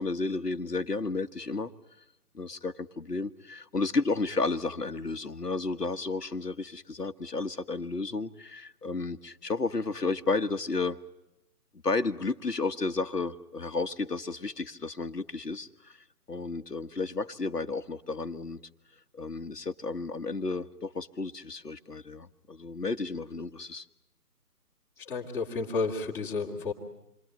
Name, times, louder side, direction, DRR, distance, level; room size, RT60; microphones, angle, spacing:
voice 1, 0.0-1.7 2.3-11.0 11.8-18.6 19.1-23.9, left 3 dB, 85° left, 1.5 m, -32 dB
voice 2, 25.0-26.7, left 4 dB, 5° left, 2.4 m, -31 dB
28.0 x 22.5 x 9.1 m
figure-of-eight pair, 150°, 47 cm